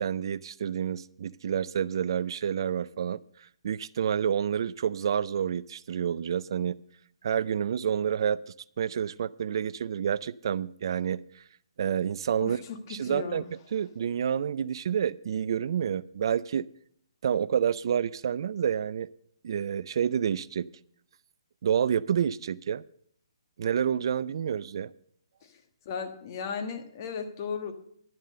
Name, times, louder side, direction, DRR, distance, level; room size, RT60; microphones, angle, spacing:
voice 1, 0.0-6.8 7.2-11.4 11.8-12.6 12.9-13.4 13.7-16.7 17.2-19.1 19.4-20.7 21.6-22.8 23.6-24.9, right 8 dB, 55° right, 19 dB, 0.3 m, -29 dB
voice 2, 12.4-13.5 25.4-27.7, left 6 dB, 40° left, 6 dB, 1.4 m, -36 dB
11.0 x 7.4 x 6.6 m, 0.65 s
hypercardioid pair, 150°, 3 cm